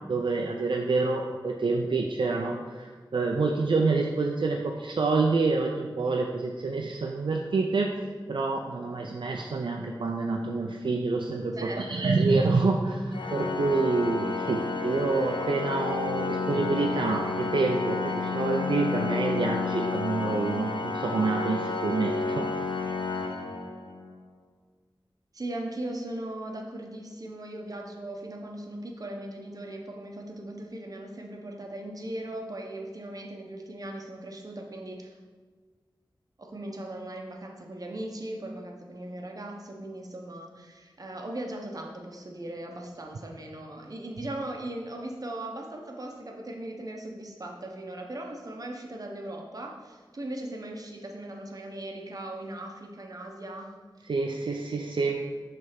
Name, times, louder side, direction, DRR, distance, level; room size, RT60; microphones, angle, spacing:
voice 1, 0.1-7.9 8.3-22.5 54.1-55.2, right 3 dB, 70° right, 1 dB, 0.5 m, -27 dB
voice 2, 11.5-12.2 25.3-35.2 36.4-53.7, right 1 dB, 45° right, 1 dB, 0.9 m, -38 dB
Organ, 13.1-24.1, left 4 dB, 70° left, 0.6 m, -31 dB
6.2 x 3.4 x 5.8 m, 1.4 s
wide cardioid pair, 80°, 8 cm